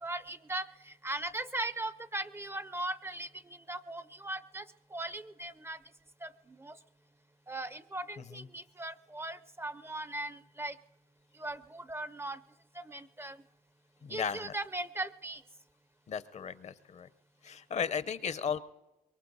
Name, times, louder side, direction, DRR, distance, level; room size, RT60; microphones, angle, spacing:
voice 1, 0.0-4.7 4.9-5.8 6.2-6.8 7.5-10.8 11.3-12.4 12.7-13.4 14.1-15.4, right 2 dB, 15° right, 15 dB, 0.4 m, -39 dB
voice 2, 14.0-14.5 16.1-17.1 17.4-18.6, left 7 dB, 50° left, 16 dB, 0.6 m, -35 dB
24.0 x 22.0 x 2.7 m, 1.1 s
cardioid pair, 90°, 15 cm